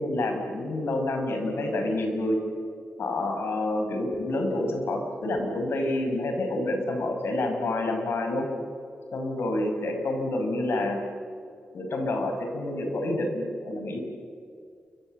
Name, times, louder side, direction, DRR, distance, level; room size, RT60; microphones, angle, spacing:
voice 1, 0.0-2.4 3.0-8.5 9.1-11.0 11.7-14.0, left 1 dB, 90° left, 4 dB, 5.6 m, -28 dB
29.5 x 24.5 x 7.7 m, 2.3 s
wide cardioid pair, 115°, 4 cm